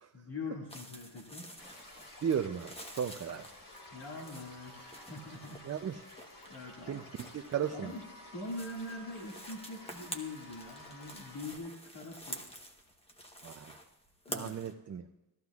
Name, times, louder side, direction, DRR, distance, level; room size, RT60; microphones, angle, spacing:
voice 1, 0.1-1.5 3.9-5.6 6.5-7.0 7.7-12.4 14.2-14.6, left 2 dB, 65° left, -2 dB, 2.0 m, -43 dB
sound 1, 0.7-14.7, equal, 15° left, 1.0 m, -49 dB
sound 2, 1.6-11.6, left 1 dB, 50° left, 1.7 m, -54 dB
voice 2, 2.2-3.5 5.6-6.0 6.9-7.9 13.4-13.8 14.3-15.1, right 8 dB, 40° right, 6 dB, 0.4 m, -35 dB
sound 3, 3.7-11.4, left 1 dB, 90° left, 4.9 m, -56 dB
17.5 x 13.5 x 2.4 m, 1.0 s
wide cardioid pair, 170°, 43 cm